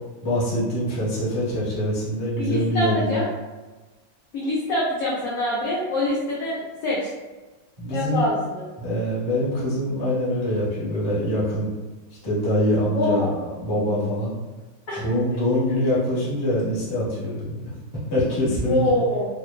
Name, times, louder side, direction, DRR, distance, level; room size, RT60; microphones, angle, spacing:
voice 1, 0.2-3.2 7.8-8.2 8.8-11.7 12.2-14.3 15.0-17.7 18.1-18.9, equal, 35° left, -9 dB, 0.3 m, -24 dB
voice 2, 2.4-3.3 4.3-7.1 7.9-8.6 12.9-13.3 14.9-15.0 18.7-19.3, left 1 dB, 85° left, -5 dB, 0.8 m, -24 dB
3.1 x 2.1 x 2.2 m, 1.2 s
omnidirectional pair, 2.1 m